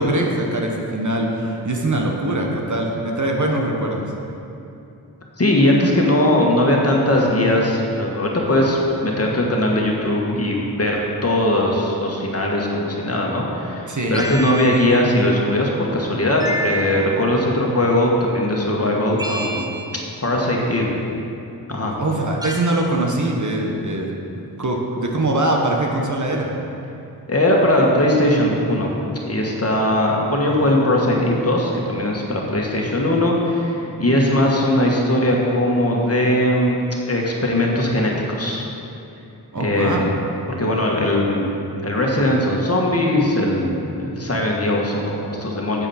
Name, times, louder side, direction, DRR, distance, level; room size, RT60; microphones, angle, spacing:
voice 1, 0.0-4.0 13.9-14.2 22.0-24.1 24.6-26.5 39.5-40.1, right 1 dB, 45° right, 0 dB, 1.3 m, -22 dB
voice 2, 5.4-19.8 20.2-20.9 21.7-21.9 27.3-28.9 29.2-36.8 37.1-38.6 39.6-40.1 40.6-45.9, left 1 dB, 35° left, -2 dB, 1.7 m, -19 dB
sound 1, 14.1-15.1 16.4-17.3 19.2-20.1 22.4-23.0, right 1 dB, 10° right, 1.0 m, -29 dB
8.9 x 7.3 x 4.4 m, 2.8 s
cardioid pair, 45°, 41 cm